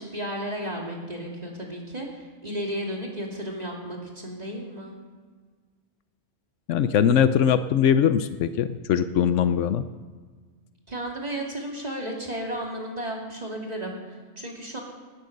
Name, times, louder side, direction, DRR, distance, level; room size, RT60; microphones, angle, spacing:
voice 1, 0.0-4.9 10.9-14.8, right 1 dB, 35° right, -1 dB, 2.6 m, -33 dB
voice 2, 6.7-9.9, left 8 dB, 90° left, 11 dB, 1.0 m, -21 dB
19.0 x 8.1 x 6.5 m, 1.5 s
omnidirectional pair, 1.2 m